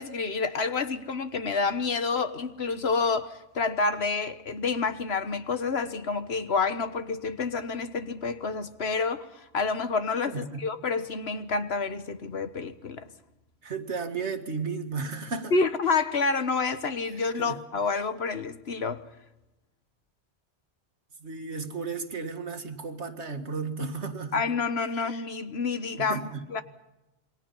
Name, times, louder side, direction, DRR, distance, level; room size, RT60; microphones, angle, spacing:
voice 1, 0.0-13.1 15.5-19.0 24.3-26.6, left 4 dB, 70° left, 1.5 m, -28 dB
voice 2, 10.3-10.7 13.6-15.5 17.4-17.5 21.2-24.4 26.0-26.5, right 4 dB, 85° right, 2.2 m, -34 dB
28.0 x 23.0 x 5.6 m
omnidirectional pair, 1.1 m